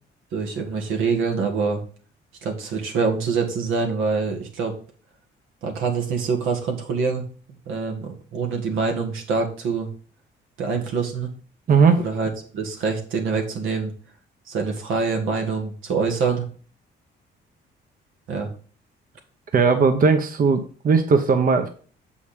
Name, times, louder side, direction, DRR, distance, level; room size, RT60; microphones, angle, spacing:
voice 1, 0.3-1.8 2.4-4.7 5.6-7.3 7.7-9.9 10.6-11.3 12.0-13.9 14.5-16.5 18.3-18.5, right 5 dB, 85° right, 3 dB, 1.9 m, -25 dB
voice 2, 11.7-12.0 19.5-21.7, right 5 dB, 45° right, 6 dB, 1.0 m, -18 dB
6.8 x 5.2 x 5.1 m, 0.41 s
cardioid pair, 90°, 20 cm